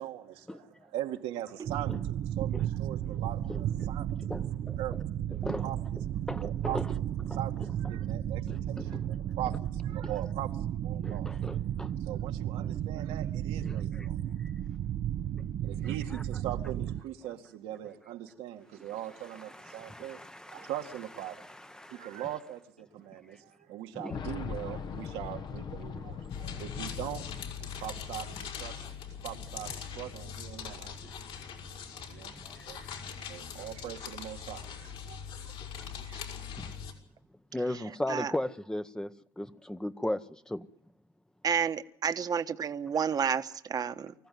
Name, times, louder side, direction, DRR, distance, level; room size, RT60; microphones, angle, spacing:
voice 1, 0.0-4.4 4.8-5.8 6.4-6.8 7.3-11.3 12.0-14.2 15.6-20.2 20.5-21.4 21.9-27.3 27.6-28.9 29.2-31.0 32.1-32.8 33.3-35.5, right 12 dB, 85° right, 2.1 m, -41 dB
sound 1, 1.6-17.0, right 11 dB, 60° right, 0.9 m, -33 dB
voice 2, 3.2-3.9 4.3-4.8 5.4-5.7 6.3-6.9 7.3-7.4 8.5-9.4 10.0-10.1 11.0-11.9 13.6-14.1 15.8-16.2 19.2-20.7 21.3-22.2 23.3-23.4 23.9-24.2 31.0-31.2 32.4-33.0 33.5-33.6 36.6-36.7 37.5-40.7, left 1 dB, 5° left, 0.9 m, -38 dB
voice 3, 12.6-13.1 26.0-26.1 36.0-36.3 38.1-38.3 41.4-44.1, right 7 dB, 40° right, 1.3 m, -31 dB
Boom, 24.1-28.9 29.1-29.2 30.3-30.4, left 6 dB, 45° left, 1.1 m, -40 dB
sound 2, 26.3-36.9, left 7 dB, 65° left, 5.4 m, -42 dB
25.0 x 15.0 x 9.4 m
cardioid pair, 105°, 10 cm